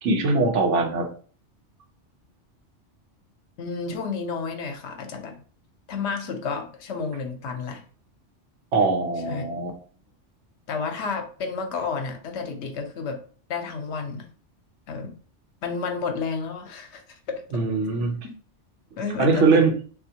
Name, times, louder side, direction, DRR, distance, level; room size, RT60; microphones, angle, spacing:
voice 1, 0.0-1.1 8.7-9.7 17.5-18.2 19.2-19.8, right 3 dB, 85° right, 4 dB, 1.0 m, -21 dB
voice 2, 3.6-5.4 5.9-7.8 9.3-9.5 10.7-13.2 13.5-14.3 14.9-15.1 15.6-17.4 19.0-19.6, left 5 dB, 75° left, 6 dB, 0.9 m, -31 dB
3.4 x 2.5 x 2.7 m, 0.42 s
omnidirectional pair, 1.2 m